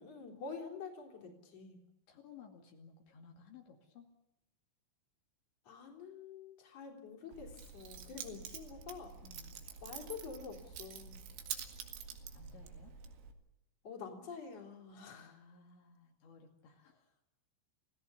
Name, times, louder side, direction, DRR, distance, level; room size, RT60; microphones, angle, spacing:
voice 1, 0.0-1.8 5.6-9.1 9.8-11.2 13.8-15.4, left 5 dB, 35° left, 1 dB, 4.1 m, -47 dB
voice 2, 2.1-4.1 9.2-9.6 12.3-12.9 15.1-17.2, left 6 dB, 70° left, 1 dB, 4.5 m, -58 dB
Keys jangling, 7.3-13.3, right 7 dB, 75° right, 4.4 m, -47 dB
29.0 x 17.0 x 7.0 m, 0.86 s
omnidirectional pair, 5.7 m